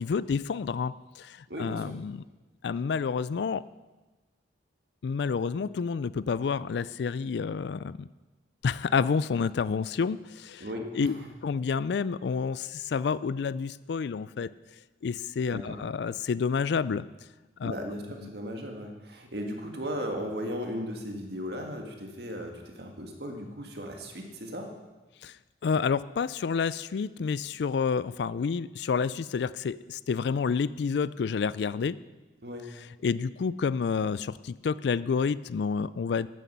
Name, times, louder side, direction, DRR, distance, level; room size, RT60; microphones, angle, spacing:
voice 1, 0.0-2.2 2.6-3.6 5.0-8.1 8.6-10.6 10.9-11.1 11.4-14.5 15.0-17.0 17.6-17.7 25.2-25.3 25.6-32.0 33.0-36.3, left 5 dB, 70° left, 18 dB, 0.4 m, -29 dB
voice 2, 1.5-1.9 10.6-11.3 15.5-15.8 17.6-24.7 32.4-32.7, equal, 60° right, 2 dB, 1.8 m, -36 dB
12.5 x 9.2 x 5.7 m, 1.2 s
head